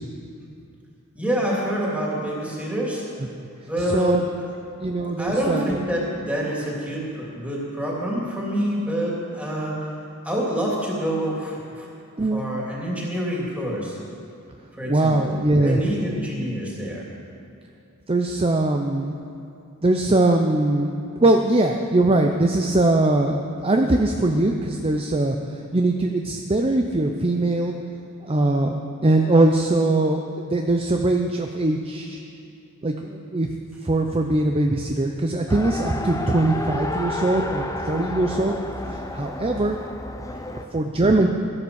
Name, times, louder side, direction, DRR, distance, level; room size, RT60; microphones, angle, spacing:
voice 1, 1.1-3.0 3.7-4.2 5.2-9.9 10.2-11.9 12.3-14.0 14.8-17.0, equal, 5° right, -5 dB, 2.9 m, -27 dB
voice 2, 3.8-4.2 4.8-5.8 12.2-12.4 14.9-15.8 18.1-19.2 19.8-20.9 21.2-25.4 25.7-27.7 28.2-32.2 32.8-33.5 33.8-38.6 38.9-39.8 40.7-41.3, right 2 dB, 25° right, 3 dB, 0.6 m, -21 dB
Race car auto racing, 35.5-40.6, left 2 dB, 15° left, 0.7 m, -31 dB
13.5 x 11.0 x 7.0 m, 2.6 s
head